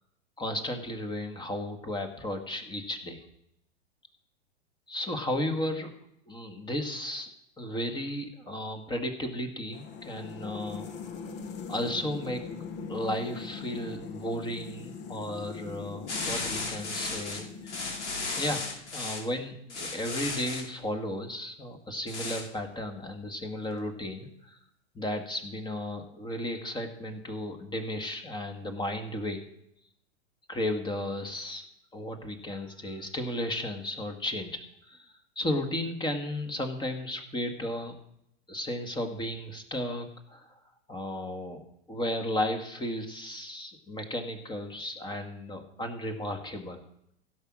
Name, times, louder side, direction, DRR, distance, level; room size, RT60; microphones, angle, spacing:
voice 1, 0.4-3.2 4.9-5.9 6.3-7.3 7.6-10.9 11.7-12.4 12.9-18.0 18.4-18.6 18.9-24.6 25.0-29.4 30.5-31.6 31.9-34.6 34.9-35.1 35.4-38.0 38.5-40.5 40.9-46.8, left 1 dB, 10° left, 6 dB, 1.7 m, -34 dB
sound 1, 9.7-19.1, left 5 dB, 30° left, 1.0 m, -41 dB
sound 2, 16.1-19.3 19.7-20.7 22.1-22.5, left 3 dB, 70° left, 2.6 m, -35 dB
16.0 x 6.4 x 6.1 m, 0.78 s
hypercardioid pair, 105°, 35 cm